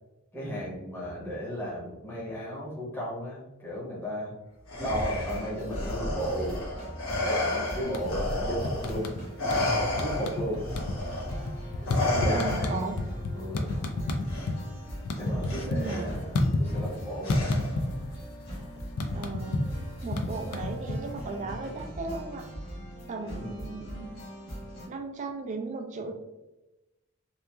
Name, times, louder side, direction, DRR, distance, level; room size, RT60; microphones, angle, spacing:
voice 1, 0.3-4.3 4.8-6.6 7.2-9.1 10.0-10.6 11.8-12.8 13.3-13.8 15.1-17.7 23.2-23.5, equal, 10° left, -7 dB, 0.7 m, -35 dB
Respiratory sounds, 4.7-9.0 9.4-13.0 14.3-14.5 15.5-16.0 17.2-17.9, left 1 dB, 70° left, 0.9 m, -31 dB
sound 1, 5.2-24.9, equal, 45° left, 1.0 m, -40 dB
sound 2, 7.8-8.3 8.6-9.7 10.0-10.5 10.7-14.6 14.9-17.0 17.3-18.2 18.4-21.3, left 2 dB, 85° left, 0.4 m, -29 dB
voice 2, 12.3-13.0 15.2-16.2 19.1-19.7 20.0-22.5 23.1-24.1 24.9-26.1, right 3 dB, 35° right, 4 dB, 0.3 m, -36 dB
2.9 x 2.4 x 2.2 m, 1.0 s
head